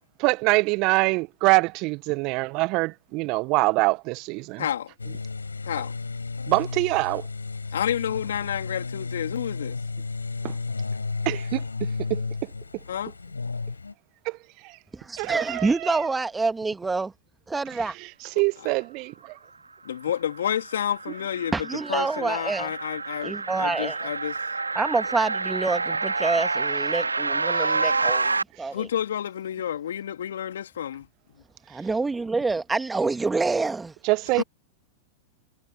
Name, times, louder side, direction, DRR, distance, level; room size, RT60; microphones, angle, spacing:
voice 1, 0.2-4.6 6.5-7.2 10.4-10.5 11.2-12.2 14.2-14.4 15.2-16.0 18.3-19.4 34.0-34.4, right 25 dB, 45° right, 1.5 m, -24 dB
voice 2, 4.6-4.9 5.6-5.9 7.7-9.8 12.9-13.1 19.8-21.5 21.9-24.4 28.7-31.1 34.4-34.5, left 9 dB, 70° left, 3.2 m, -30 dB
sound 1, 5.0-13.9, left 4 dB, 85° left, 6.4 m, -33 dB
voice 3, 14.9-17.1 17.5-18.0 21.5-22.7 23.2-24.1 24.8-28.9 31.7-33.9 34.4-34.5, right 3 dB, 10° right, 1.9 m, -27 dB
sound 2, 20.1-28.4, right 3 dB, 90° right, 2.6 m, -28 dB
figure-of-eight pair, 95°, 0 cm